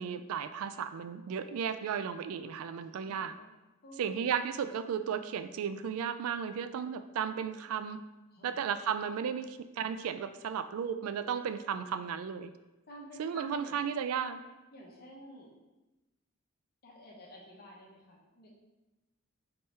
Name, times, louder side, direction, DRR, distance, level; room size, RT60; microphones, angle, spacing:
voice 1, 0.0-3.4 4.0-8.0 8.4-12.5 13.2-14.4, right 7 dB, 75° right, 11 dB, 0.3 m, -34 dB
voice 2, 2.9-3.5 3.8-4.2 8.3-8.6 12.9-13.8 14.7-15.5 16.8-18.5, equal, 45° left, -2 dB, 0.9 m, -51 dB
4.2 x 3.5 x 3.3 m, 1.1 s
head